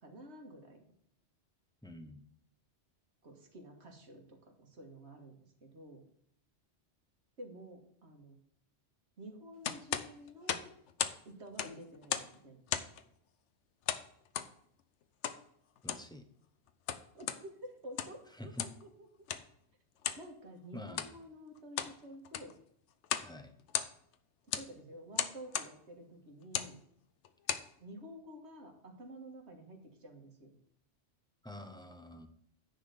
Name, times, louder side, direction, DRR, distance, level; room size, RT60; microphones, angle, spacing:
voice 1, 0.0-0.8 3.2-5.4 5.6-6.0 7.4-8.4 9.2-10.7 11.3-12.8 17.1-18.9 20.2-22.6 24.6-26.8 27.8-30.6, equal, 70° right, 2 dB, 2.0 m, -50 dB
voice 2, 1.8-2.2 15.8-16.3 18.3-18.7 20.7-21.1 23.2-23.6 31.4-32.3, left 1 dB, 5° left, 6 dB, 0.7 m, -47 dB
sound 1, 9.6-11.2 11.5-12.4 12.7-13.0 13.9-14.5 15.2-15.4 15.8-16.1 16.7-17.4 17.8-18.2 18.6-18.8 19.3-19.5 20.0-20.3 20.9-21.1 21.6-22.0 22.3-22.6 23.0-23.3 23.6-24.1 24.5-24.7 25.2-25.7 26.4-26.7 27.3-27.7, left 9 dB, 80° left, 1.0 m, -36 dB
10.0 x 3.9 x 6.8 m, 0.68 s
omnidirectional pair, 1.2 m